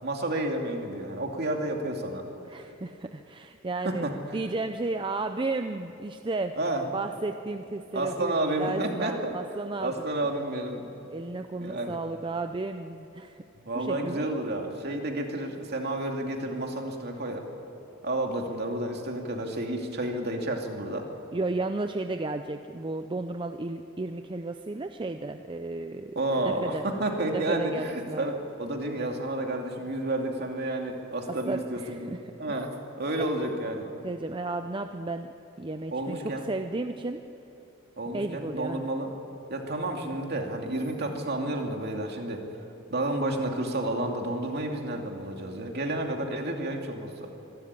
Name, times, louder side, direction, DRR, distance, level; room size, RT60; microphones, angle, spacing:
voice 1, 0.0-2.2 3.8-4.1 6.6-6.8 7.9-9.4 9.8-10.9 11.5-12.0 13.6-17.4 18.0-21.0 26.2-32.1 32.4-33.9 35.9-36.5 38.0-39.1 39.5-42.4 42.9-47.3, right 1 dB, 55° right, 2 dB, 2.6 m, -30 dB
voice 2, 2.5-6.5 6.9-9.9 11.1-13.4 13.7-14.3 21.3-26.1 26.4-26.9 27.3-28.3 31.5-32.2 32.5-32.6 34.0-35.3 35.6-37.2 38.1-38.9, right 2 dB, 25° right, 7 dB, 0.6 m, -33 dB
25.5 x 13.0 x 9.6 m, 2.9 s
head